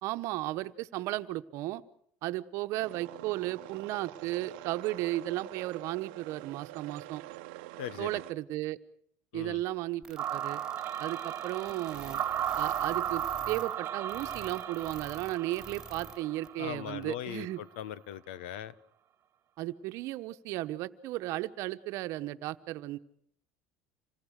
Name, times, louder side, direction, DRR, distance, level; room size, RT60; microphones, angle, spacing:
voice 1, 0.0-1.8 2.2-7.2 8.0-8.8 9.3-10.6 11.0-12.2 12.6-17.6 19.6-23.0, right 16 dB, 60° right, 11 dB, 1.2 m, -35 dB
sound 1, 2.8-8.3, right 19 dB, 80° right, 0.9 m, -46 dB
voice 2, 7.8-8.2 9.3-9.6 16.6-18.7, left 11 dB, 90° left, 19 dB, 1.0 m, -40 dB
sound 2, 10.0-16.2 16.4-16.5 17.0-17.1, right 2 dB, 10° right, 4.8 m, -48 dB
sound 3, 10.2-17.3, right 10 dB, 40° right, 1.8 m, -35 dB
27.0 x 19.0 x 6.6 m, 0.66 s
supercardioid pair, 125°, 6 cm